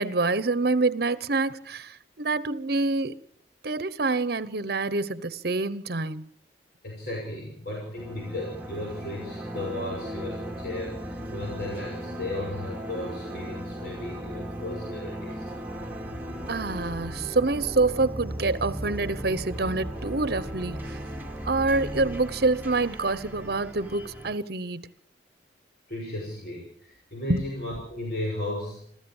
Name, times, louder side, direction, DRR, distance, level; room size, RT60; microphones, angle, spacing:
voice 1, 0.0-3.1 3.6-6.3 16.5-20.8 21.4-24.9 27.3-27.4, right 3 dB, 60° right, 1.0 m, -26 dB
voice 2, 6.8-15.5 25.9-28.8, left 1 dB, 60° left, 6.0 m, -35 dB
sound 1, 8.0-24.3, equal, 10° right, 2.2 m, -37 dB
27.0 x 14.0 x 7.3 m
head